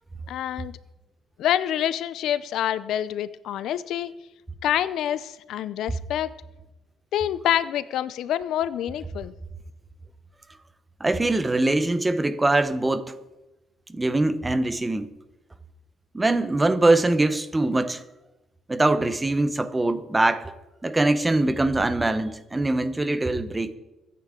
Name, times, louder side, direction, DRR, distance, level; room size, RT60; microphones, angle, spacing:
voice 1, 0.3-0.7 1.4-4.1 4.6-6.3 7.1-9.3, left 11 dB, 70° left, 0.5 m, -26 dB
voice 2, 11.0-13.1 13.9-15.1 16.1-18.0 18.7-20.5 20.8-23.7, right 2 dB, 10° right, 0.8 m, -23 dB
23.5 x 9.8 x 3.7 m
cardioid pair, 150°, 0 cm